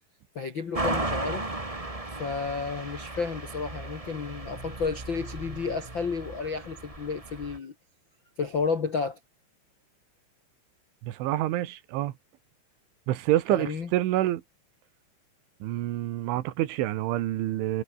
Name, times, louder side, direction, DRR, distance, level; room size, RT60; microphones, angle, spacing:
voice 1, 0.3-1.5 2.1-7.7 8.4-9.2 13.5-13.9, left 5 dB, 60° left, 1.2 m, -32 dB
sound 1, 0.7-7.6, right 2 dB, 25° right, 0.8 m, -35 dB
voice 2, 11.0-12.1 13.1-14.4 15.6-17.8, right 14 dB, 90° right, 3.9 m, -27 dB
omnidirectional pair, 5.3 m